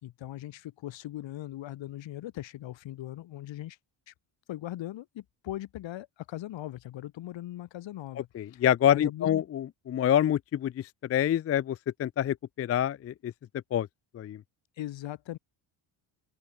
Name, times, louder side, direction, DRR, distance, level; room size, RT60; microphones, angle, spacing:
voice 1, 0.0-3.8 4.1-4.2 4.5-9.4 14.8-15.4, left 14 dB, 75° left, 4.2 m, -39 dB
voice 2, 8.3-13.3 13.7-13.9 14.1-14.4, left 10 dB, 35° left, 0.4 m, -27 dB
open air
cardioid pair, 135°, 46 cm